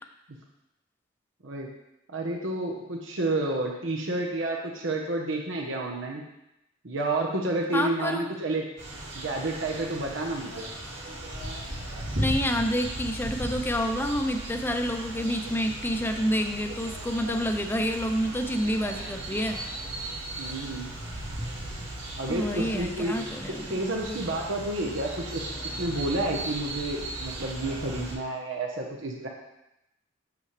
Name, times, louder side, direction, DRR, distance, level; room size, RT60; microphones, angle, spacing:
voice 1, 2.1-6.2 6.8-8.6 9.1-10.6 20.4-20.9 22.2-23.2 23.5-29.3, right 2 dB, 85° right, 0 dB, 1.1 m, -30 dB
voice 2, 7.7-8.3 12.2-19.6 22.2-23.7, equal, 10° left, 6 dB, 0.5 m, -28 dB
sound 1, 8.8-28.1, right 1 dB, 65° right, 2.5 m, -37 dB
sound 2, 11.4-22.8, right 2 dB, 80° left, 0.8 m, -47 dB
8.5 x 6.8 x 3.3 m, 0.89 s
head